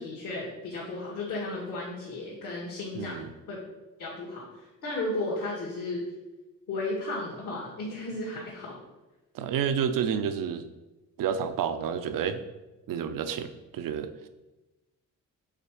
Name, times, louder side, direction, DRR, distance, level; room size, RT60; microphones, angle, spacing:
voice 1, 0.0-3.2 3.5-3.6 4.0-6.0 6.7-8.8, left 2 dB, 65° left, -7 dB, 2.1 m, -34 dB
voice 2, 2.9-3.3 9.3-10.7 11.2-12.4 12.9-14.3, right 7 dB, 75° right, 10 dB, 0.6 m, -30 dB
5.7 x 3.9 x 4.9 m, 1.1 s
cardioid pair, 90°, 34 cm